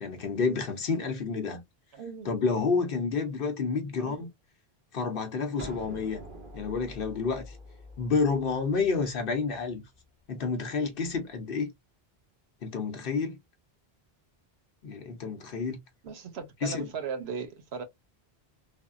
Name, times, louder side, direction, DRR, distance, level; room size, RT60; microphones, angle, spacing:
voice 1, 0.0-1.6 2.2-4.3 4.9-6.2 6.5-7.6 8.0-9.8 10.3-11.7 12.6-13.4 14.8-15.8 16.6-16.9, left 4 dB, 65° left, 0.8 m, -29 dB
voice 2, 1.9-2.3 4.0-4.2 16.0-17.8, right 5 dB, 90° right, 1.0 m, -37 dB
sound 1, 5.6-11.2, equal, 55° right, 0.9 m, -47 dB
3.4 x 2.0 x 2.4 m
omnidirectional pair, 1.0 m